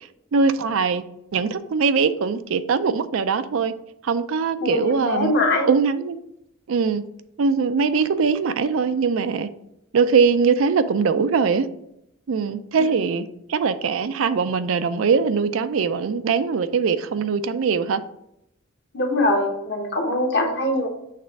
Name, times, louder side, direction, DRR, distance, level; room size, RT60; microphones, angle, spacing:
voice 1, 0.3-1.0 1.3-3.7 4.0-5.3 5.7-6.2 6.7-7.0 7.4-9.5 9.9-11.7 12.3-18.0, right 5 dB, 65° right, 12 dB, 0.4 m, -21 dB
voice 2, 4.6-5.7 18.9-20.9, left 1 dB, 50° left, 3 dB, 1.1 m, -22 dB
6.6 x 3.4 x 5.2 m, 0.82 s
head